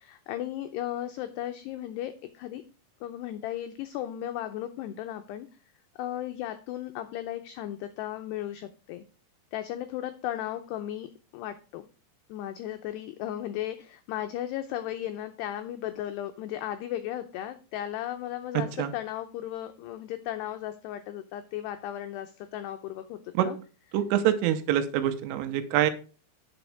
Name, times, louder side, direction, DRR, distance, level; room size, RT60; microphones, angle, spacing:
voice 1, 0.0-2.6 3.0-5.5 6.0-9.0 9.5-11.9 12.3-23.6, left 12 dB, 85° left, 7 dB, 2.3 m, -35 dB
voice 2, 18.6-18.9 23.4-23.5 23.9-25.9, right 11 dB, 90° right, 9 dB, 3.5 m, -25 dB
9.3 x 6.4 x 4.7 m, 0.36 s
omnidirectional pair, 5.6 m